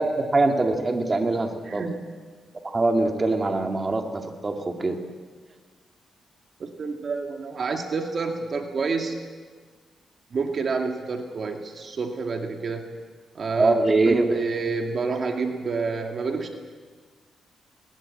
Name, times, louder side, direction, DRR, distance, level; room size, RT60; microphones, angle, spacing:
voice 1, 0.0-1.8 2.6-5.0 13.6-14.3, right 2 dB, 25° right, 3 dB, 2.4 m, -23 dB
voice 2, 1.6-2.0 6.6-9.2 10.3-12.8 13.3-13.8 14.1-16.6, right 4 dB, 50° right, 3 dB, 2.2 m, -28 dB
21.0 x 20.0 x 8.6 m, 1.5 s
cardioid pair, 100°, 0 cm